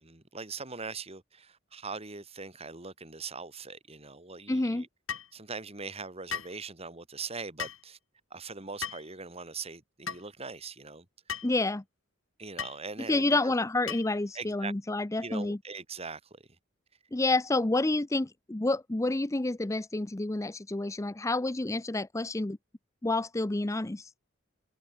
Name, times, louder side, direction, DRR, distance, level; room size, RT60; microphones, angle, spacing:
voice 1, 0.0-4.9 5.3-8.0 8.3-11.1 11.3-11.4 12.4-13.5 14.3-14.7 15.2-16.5, right 4 dB, 30° right, 3.1 m, -41 dB
voice 2, 4.5-4.8 11.4-11.8 13.1-15.6 17.1-22.6 23.0-24.1, left 2 dB, 15° left, 0.6 m, -29 dB
sound 1, 5.1-5.3 6.3-6.6 7.6-7.8 8.8-9.1 10.1-10.2 11.3-11.5 12.6-12.8 13.9-14.2, left 7 dB, 90° left, 6.5 m, -36 dB
head